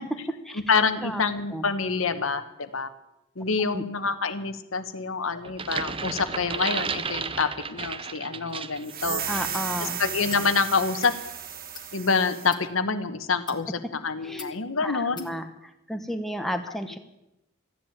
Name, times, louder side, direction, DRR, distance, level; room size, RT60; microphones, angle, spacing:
voice 1, 0.7-2.9 3.4-9.2 9.8-11.1 11.9-15.3, left 5 dB, 75° left, 10 dB, 1.1 m, -27 dB
sound 1, 5.4-8.9 9.3-9.5, right 5 dB, 25° right, 0.6 m, -33 dB
sound 2, 8.8-12.5, right 8 dB, 45° right, 1.4 m, -34 dB
voice 2, 9.3-10.0 14.2-14.5 14.8-15.4 15.9-17.0, equal, ahead, 5 dB, 1.2 m, -32 dB
sound 3, 9.5-9.7 10.3-10.5 10.9-11.2 11.7-11.9 12.4-12.6 13.3-13.6 14.4-14.5 15.2-15.3, left 6 dB, 20° left, 1.6 m, -42 dB
14.5 x 10.5 x 8.7 m, 0.88 s
head